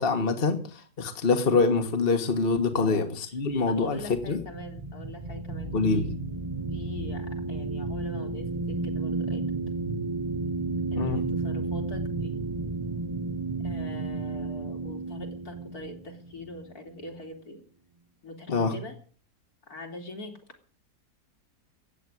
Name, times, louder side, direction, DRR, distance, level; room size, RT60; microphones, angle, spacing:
voice 1, 0.0-4.0 4.3-4.4 5.7-6.1 11.0-11.2 18.5-18.8, left 4 dB, 35° left, 1.8 m, -25 dB
voice 2, 2.8-3.4 3.6-6.1 6.7-9.5 10.9-12.4 13.6-17.6 18.2-19.0 19.7-20.3, left 2 dB, 65° left, 3.6 m, -43 dB
sound 1, 3.8-17.3, right 3 dB, 20° right, 1.6 m, -32 dB
15.0 x 9.3 x 9.5 m
omnidirectional pair, 1.7 m